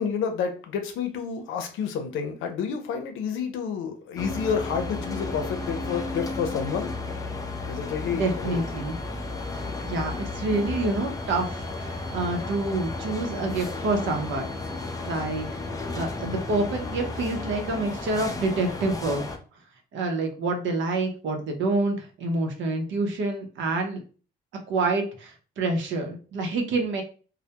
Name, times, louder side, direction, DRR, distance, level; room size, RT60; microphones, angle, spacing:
voice 1, 0.0-6.9 7.6-8.6, left 6 dB, 85° left, 6 dB, 0.6 m, -29 dB
sound 1, 4.2-19.4, left 2 dB, 15° left, 0.4 m, -33 dB
voice 2, 8.1-9.0 9.6-14.5 15.1-15.5 15.9-19.2 19.9-24.0 24.7-27.0, right 2 dB, 70° right, 3 dB, 0.7 m, -27 dB
2.1 x 2.1 x 2.8 m, 0.38 s
cardioid pair, 90°, 20 cm